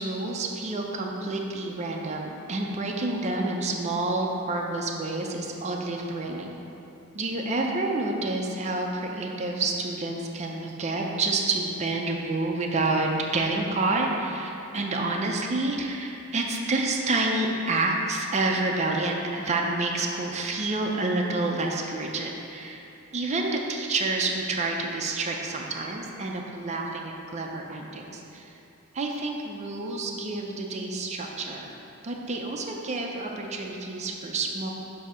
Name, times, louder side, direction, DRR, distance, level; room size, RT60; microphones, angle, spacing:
voice 1, 0.0-6.5 7.1-22.8 23.1-28.5 28.9-31.7 32.0-34.7, right 2 dB, 30° right, 0 dB, 0.5 m, -28 dB
7.1 x 2.8 x 5.5 m, 2.9 s
head